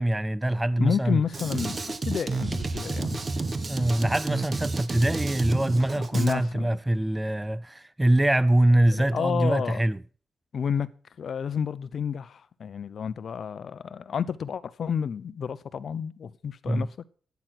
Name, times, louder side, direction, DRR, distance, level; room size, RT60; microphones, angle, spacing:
voice 1, 0.0-1.2 3.7-10.0 16.7-16.9, right 1 dB, 15° right, 0.6 m, -24 dB
voice 2, 0.8-3.3 5.9-6.8 8.9-9.8 10.5-10.9 11.2-17.0, left 7 dB, 65° left, 0.8 m, -30 dB
Drum kit, 1.3-6.3, right 3 dB, 40° right, 1.5 m, -30 dB
11.5 x 9.5 x 6.0 m
supercardioid pair, 55°, 0 cm